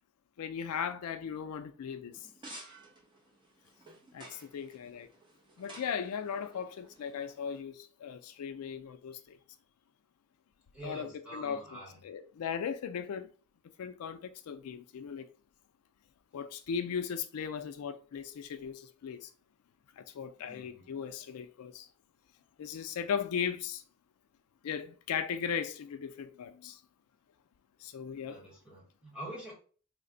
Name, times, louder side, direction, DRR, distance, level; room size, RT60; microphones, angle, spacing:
voice 1, 0.4-2.2 4.1-5.1 5.6-9.4 10.8-11.6 12.0-13.3 13.8-15.3 16.3-19.3 20.0-21.9 22.6-23.8 24.6-26.8 27.8-28.4, left 7 dB, 80° left, 0.4 m, -37 dB
sound 1, 2.1-7.6, right 2 dB, 20° right, 0.9 m, -53 dB
voice 2, 10.7-12.0 20.4-20.9 28.2-29.5, right 1 dB, 5° right, 1.5 m, -46 dB
3.2 x 2.2 x 3.8 m
head